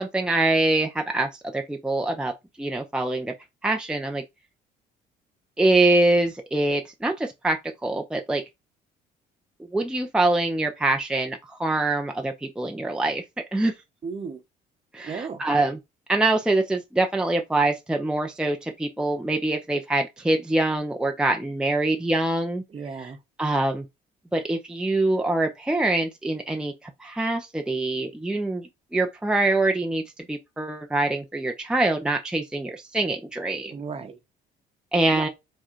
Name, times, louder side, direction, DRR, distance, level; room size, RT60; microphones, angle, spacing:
voice 1, 0.0-2.3 2.6-3.3 3.6-4.2 5.6-8.4 9.6-13.2 13.5-13.7 14.9-15.8 16.1-22.6 23.4-23.8 24.3-30.0 30.3-33.7 34.9-35.3, right 2 dB, 5° right, 0.6 m, -24 dB
voice 2, 14.0-14.4 15.0-15.4 22.7-23.2 33.6-34.2 35.1-35.3, right 5 dB, 35° right, 1.0 m, -35 dB
4.8 x 2.3 x 4.5 m
cardioid pair, 110°, 17 cm